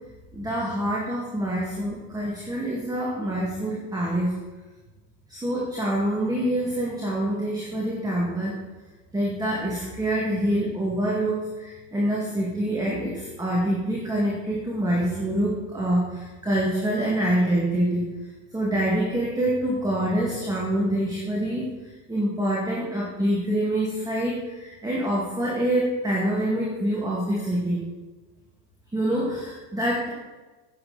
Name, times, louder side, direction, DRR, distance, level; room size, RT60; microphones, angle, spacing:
voice 1, 0.3-4.3 5.3-8.6 9.1-18.1 18.5-27.8 28.9-30.1, right 1 dB, 10° right, -4 dB, 2.1 m, -26 dB
10.0 x 8.8 x 4.1 m, 1.2 s
hypercardioid pair, 110°, 47 cm